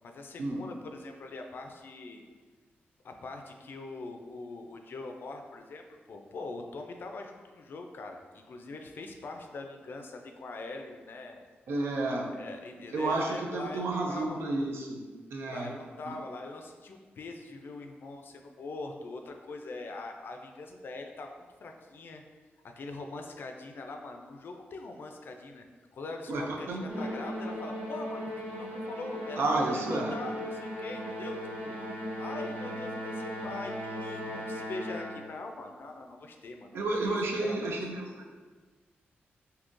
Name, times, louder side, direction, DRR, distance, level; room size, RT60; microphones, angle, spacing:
voice 1, 0.0-2.2 3.0-5.8 6.1-11.4 12.4-14.6 15.5-21.3 21.6-22.2 22.6-25.6 25.9-29.4 29.7-31.7 32.2-36.9 37.4-37.7, left 3 dB, 60° left, 4 dB, 0.4 m, -42 dB
voice 2, 11.7-12.3 12.9-15.0 15.3-15.7 16.1-16.2 26.3-26.9 29.4-30.2 36.7-38.3, right 2 dB, 75° right, 0 dB, 0.5 m, -31 dB
Musical instrument, 26.9-35.4, equal, 50° right, 1.4 m, -37 dB
3.6 x 2.7 x 2.5 m, 1.4 s
wide cardioid pair, 120°, 4 cm